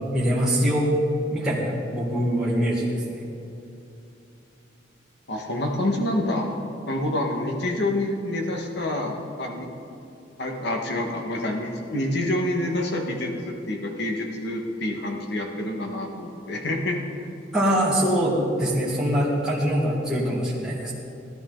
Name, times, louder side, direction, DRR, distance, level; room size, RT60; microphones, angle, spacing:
voice 1, 0.1-0.9 1.3-3.2 17.5-20.9, equal, 5° right, -8 dB, 1.9 m, -23 dB
voice 2, 5.3-6.6 6.9-9.7 10.4-17.0, left 1 dB, 65° left, 1 dB, 1.7 m, -27 dB
17.5 x 11.5 x 4.0 m, 2.8 s
head